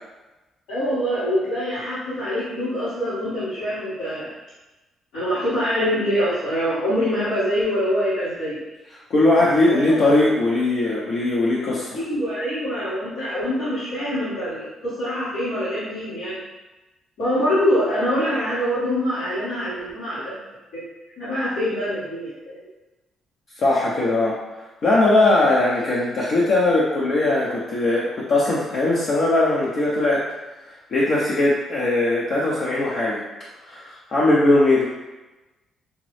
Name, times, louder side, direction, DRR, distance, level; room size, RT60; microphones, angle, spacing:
voice 1, 0.7-4.3 5.1-8.6 9.7-9.9 11.9-16.4 17.2-20.4 20.7-20.8 21.2-22.7, equal, 85° left, -13 dB, 1.5 m, -24 dB
voice 2, 9.1-12.0 23.6-30.3 30.9-33.2 33.7-34.8, left 2 dB, 60° left, -6 dB, 0.7 m, -20 dB
4.9 x 2.0 x 3.1 m, 1.1 s
cardioid pair, 90°, 0 cm